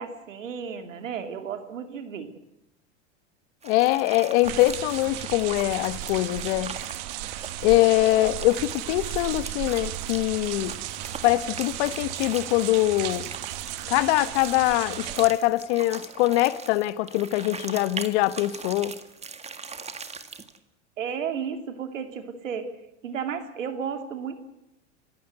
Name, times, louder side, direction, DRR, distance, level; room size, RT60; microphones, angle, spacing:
voice 1, 0.0-2.3 21.0-22.7 23.0-24.3, right 7 dB, 85° right, 2.7 m, -33 dB
voice 2, 3.6-6.7 7.6-10.8 11.2-13.3 13.9-18.9, left 17 dB, 60° left, 1.2 m, -23 dB
sound 1, 3.6-20.6, right 5 dB, 15° right, 1.9 m, -41 dB
sound 2, 4.4-15.3, right 15 dB, 55° right, 1.8 m, -35 dB
29.5 x 16.0 x 8.0 m
hypercardioid pair, 95°, 37 cm